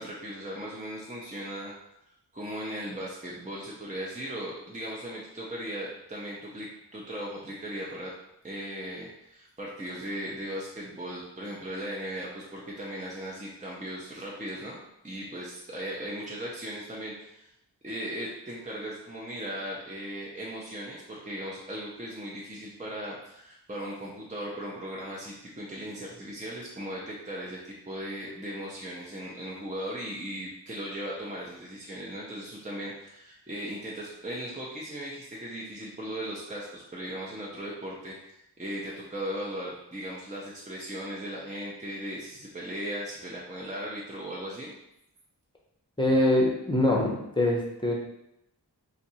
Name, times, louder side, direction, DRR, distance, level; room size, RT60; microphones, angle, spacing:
voice 1, 0.0-1.7 2.3-8.1 8.4-14.8 15.0-17.5 17.8-44.7, equal, 20° right, -4 dB, 0.7 m, -37 dB
voice 2, 46.0-47.9, left 1 dB, 10° left, -2 dB, 0.8 m, -24 dB
2.7 x 2.5 x 4.2 m, 0.81 s
wide cardioid pair, 45°, 42 cm